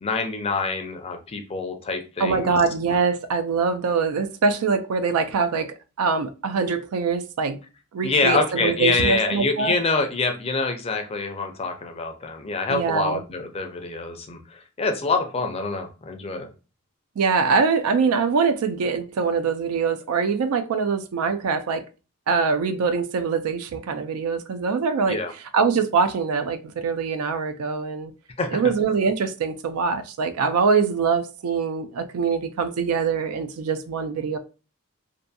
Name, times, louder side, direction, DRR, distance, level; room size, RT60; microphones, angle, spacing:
voice 1, 0.0-2.6 8.0-16.5 25.1-25.3 28.4-28.6, left 3 dB, 25° left, 0.4 m, -26 dB
voice 2, 2.2-7.6 7.9-9.7 12.7-13.2 17.2-21.8 22.3-25.2 25.5-28.1 28.5-34.4, right 5 dB, 85° right, 0.4 m, -23 dB
2.6 x 2.5 x 2.2 m
head